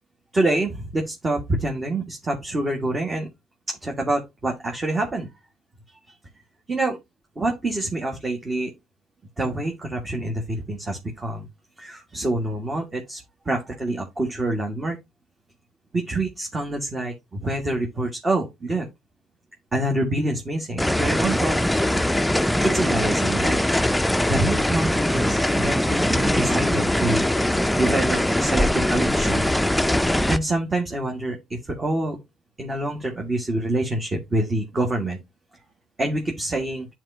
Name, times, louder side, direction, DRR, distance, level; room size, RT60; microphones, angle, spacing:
voice 1, 0.3-3.3 3.7-5.3 6.7-7.0 7.4-8.7 9.4-11.5 11.8-15.0 15.9-18.9 19.7-21.8 22.6-23.6 24.3-27.2 27.8-29.5 30.3-32.2 32.6-35.2 36.0-36.9, right 2 dB, 30° right, 1.7 m, -26 dB
sound 1, 20.8-30.4, left 1 dB, 5° left, 0.4 m, -21 dB
10.5 x 4.5 x 2.7 m
cardioid pair, 90°, 0 cm